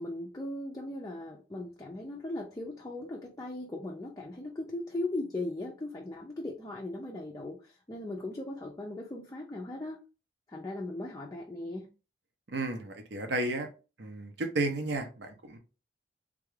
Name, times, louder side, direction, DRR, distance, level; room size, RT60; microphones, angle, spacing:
voice 1, 0.0-10.0 10.5-11.9, left 2 dB, 20° left, -1 dB, 0.4 m, -38 dB
voice 2, 12.5-13.7 14.0-15.6, right 2 dB, 70° right, 5 dB, 0.7 m, -33 dB
3.5 x 2.3 x 3.1 m, 0.32 s
head